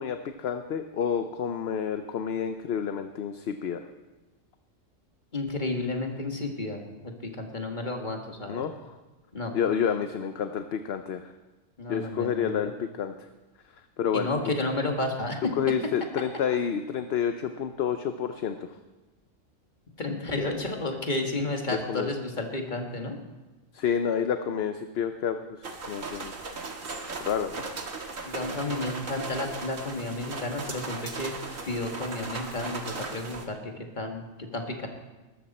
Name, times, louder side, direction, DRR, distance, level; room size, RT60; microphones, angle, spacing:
voice 1, 0.0-3.8 8.5-8.9 9.5-11.3 11.9-13.1 14.0-14.4 15.6-18.6 21.7-22.1 23.7-26.3 27.2-27.6, left 7 dB, 60° left, 8 dB, 0.9 m, -29 dB
voice 2, 5.3-8.6 9.3-9.5 11.8-12.6 14.1-15.5 20.0-23.2 28.2-31.3 31.6-34.9, left 2 dB, 35° left, 2 dB, 2.0 m, -32 dB
sound 1, 25.6-33.4, right 3 dB, 85° right, 2.0 m, -37 dB
20.5 x 13.0 x 4.3 m, 1.2 s
omnidirectional pair, 1.3 m